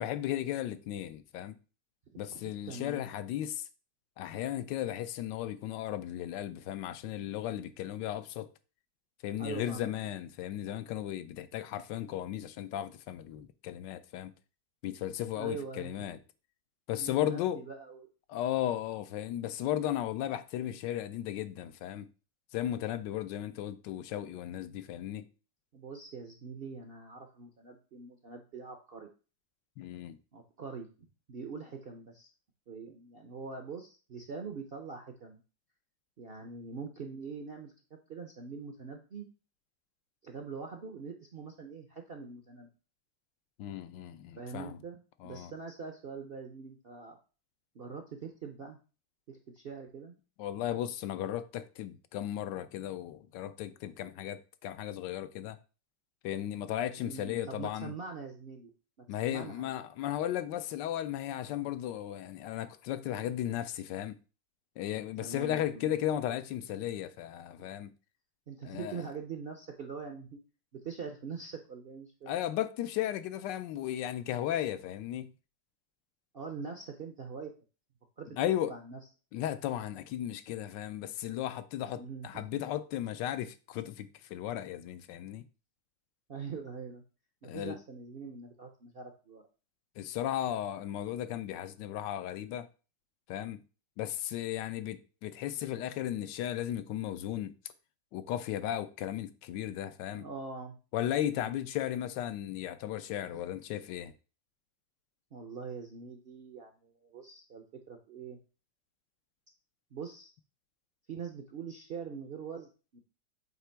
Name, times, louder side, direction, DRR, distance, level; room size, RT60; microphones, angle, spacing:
voice 1, 0.0-1.6 2.2-3.7 4.2-8.5 9.2-14.3 14.8-16.2 16.9-17.6 18.3-22.1 22.5-25.3 29.8-30.2 43.6-44.8 45.2-45.5 50.4-55.6 56.2-57.9 59.1-64.2 64.8-67.9 68.6-69.0 72.3-75.3 78.3-78.7 79.3-85.4 87.4-87.8 90.0-92.7 93.3-93.6 94.0-97.5 98.1-100.3 100.9-104.1, left 12 dB, 85° left, 1.2 m, -35 dB
voice 2, 2.7-3.0 9.4-9.9 15.3-16.1 16.9-18.1 25.7-29.1 30.3-32.3 32.7-35.4 36.2-39.3 40.2-42.7 44.4-47.2 47.7-48.8 49.3-50.1 57.0-58.7 59.2-59.7 65.2-65.9 67.6-67.7 68.5-70.4 70.7-72.3 76.3-77.5 78.2-78.4 78.7-79.0 82.0-82.6 86.3-87.0 87.4-89.4 100.1-100.8 101.3-101.6 103.3-103.5 105.3-108.4 109.9-110.3 111.1-113.0, right 5 dB, 65° right, 0.5 m, -43 dB
7.9 x 2.9 x 4.5 m
omnidirectional pair, 1.9 m